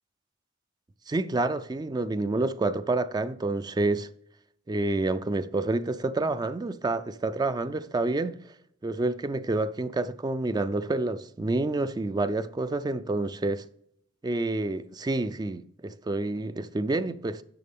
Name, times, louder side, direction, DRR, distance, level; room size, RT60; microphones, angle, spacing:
voice 1, 1.1-4.1 4.7-8.4 8.8-13.6 14.2-17.4, right 2 dB, 20° right, 0.3 m, -28 dB
10.5 x 6.8 x 3.6 m
head